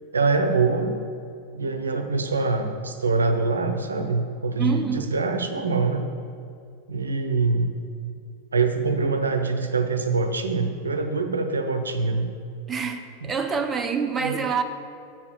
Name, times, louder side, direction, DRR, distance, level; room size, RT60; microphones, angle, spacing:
voice 1, 0.1-1.0 1.5-6.0 6.9-7.7 8.5-12.3 14.2-14.4, right 4 dB, 75° right, 7 dB, 0.6 m, -24 dB
voice 2, 4.6-5.1 12.7-14.6, right 6 dB, 20° right, 6 dB, 0.5 m, -26 dB
7.1 x 4.8 x 6.6 m, 2.5 s
figure-of-eight pair, 90°, 0 cm